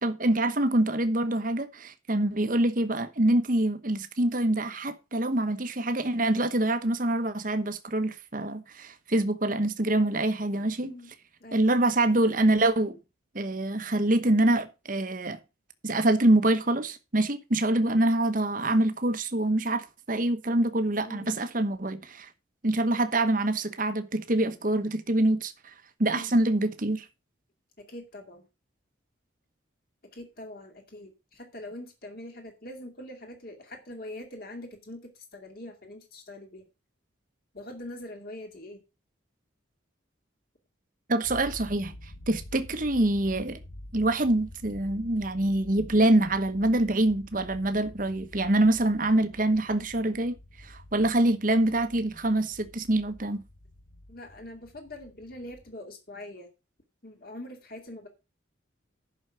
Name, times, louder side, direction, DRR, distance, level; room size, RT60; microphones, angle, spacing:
voice 1, 0.0-10.9 11.5-13.0 13.3-15.4 15.8-22.3 22.6-25.5 26.0-27.1 41.1-41.9 42.3-43.6 43.9-50.3 50.6-53.4, right 1 dB, 40° right, 1.1 m, -25 dB
voice 2, 21.0-21.4 26.1-26.3 27.9-28.5 30.1-36.6 37.5-38.8 54.1-56.5 57.0-58.1, left 1 dB, 50° left, 2.4 m, -43 dB
sound 1, 41.2-55.7, left 1 dB, 85° left, 1.6 m, -48 dB
11.0 x 6.3 x 5.7 m
head